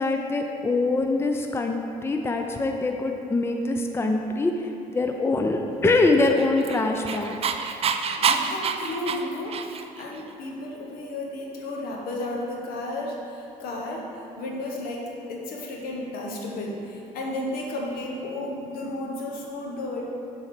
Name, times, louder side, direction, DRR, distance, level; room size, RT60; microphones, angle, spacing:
voice 1, 0.0-7.4, left 2 dB, 15° left, 3 dB, 0.5 m, -24 dB
Dog, 6.2-10.0, right 6 dB, 40° right, 0.4 m, -27 dB
voice 2, 8.2-14.0 14.4-20.0, left 1 dB, 75° left, -1 dB, 1.3 m, -33 dB
6.8 x 4.0 x 6.1 m, 2.9 s
supercardioid pair, 80°, 15 cm